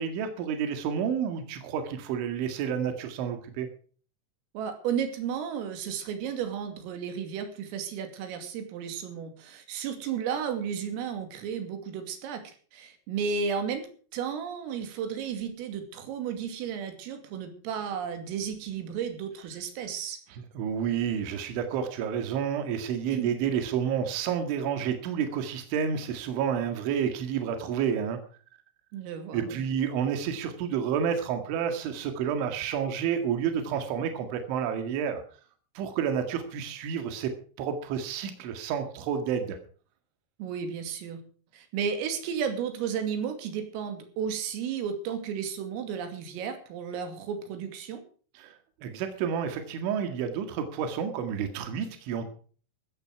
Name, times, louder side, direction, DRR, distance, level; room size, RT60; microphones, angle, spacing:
voice 1, 0.0-3.7 20.6-28.2 29.3-35.2 35.8-39.6 48.4-52.3, right 8 dB, 70° right, 7 dB, 4.3 m, -30 dB
voice 2, 4.6-12.4 12.7-13.9 14.1-20.2 23.1-23.3 28.9-29.6 40.4-41.2 41.5-48.0, right 7 dB, 90° right, 7 dB, 5.2 m, -33 dB
15.5 x 14.0 x 4.7 m, 0.42 s
omnidirectional pair, 5.8 m